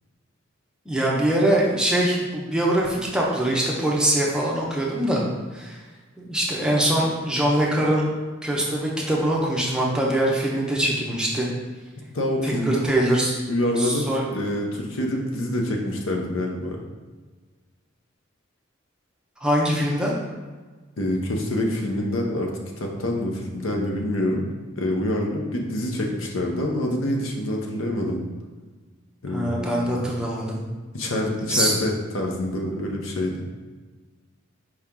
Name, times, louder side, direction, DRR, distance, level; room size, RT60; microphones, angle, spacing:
voice 1, 0.9-5.2 5.5-5.8 6.2-8.1 8.4-11.5 12.4-13.4 13.8-14.2 19.4-20.1 29.3-30.6 31.5-31.7, right 1 dB, 5° right, -4 dB, 0.7 m, -23 dB
voice 2, 12.1-12.8 13.5-16.8 21.0-24.5 24.8-28.2 29.2-30.0 30.9-33.4, left 1 dB, 80° left, 1 dB, 0.7 m, -26 dB
4.7 x 2.9 x 3.6 m, 1.4 s
head